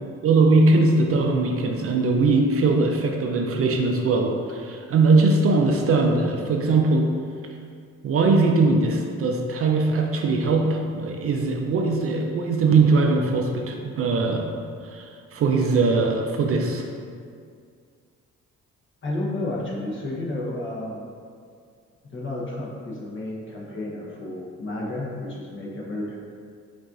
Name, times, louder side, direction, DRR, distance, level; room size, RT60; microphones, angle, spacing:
voice 1, 0.2-7.1 8.0-14.5 14.8-16.8, right 3 dB, 50° right, 2 dB, 0.4 m, -21 dB
voice 2, 19.0-21.1 22.0-26.2, left 1 dB, 40° left, -4 dB, 1.0 m, -31 dB
5.3 x 2.5 x 2.5 m, 2.2 s
cardioid pair, 90°, 30 cm